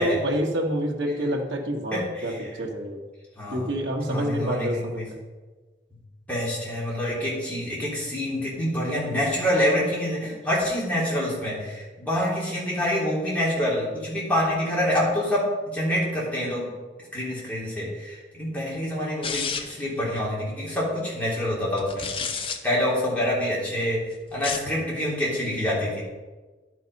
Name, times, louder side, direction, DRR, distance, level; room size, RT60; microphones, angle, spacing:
voice 1, 0.0-3.0 3.5-5.2, equal, 90° right, -1 dB, 1.8 m, -27 dB
voice 2, 1.9-2.5 3.4-3.7 4.0-5.1 6.3-16.7 17.1-22.0 22.6-26.0, left 1 dB, 10° left, -7 dB, 3.4 m, -26 dB
sound 1, 19.2-19.9 21.8-22.6 24.3-24.7, left 6 dB, 30° left, 0.7 m, -30 dB
11.0 x 6.3 x 5.5 m, 1.3 s
head